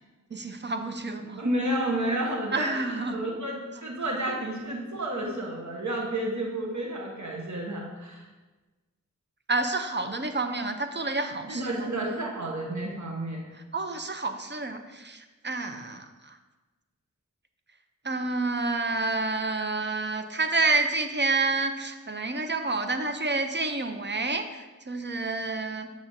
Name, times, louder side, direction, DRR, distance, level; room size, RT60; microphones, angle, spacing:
voice 1, 0.3-1.4 2.5-3.2 9.5-11.9 13.7-16.4 18.0-25.9, right 3 dB, 35° right, 7 dB, 0.5 m, -29 dB
voice 2, 1.4-8.3 11.5-13.5, right 1 dB, 60° right, -1 dB, 1.0 m, -31 dB
7.2 x 5.9 x 2.7 m, 1.2 s
wide cardioid pair, 55°, 32 cm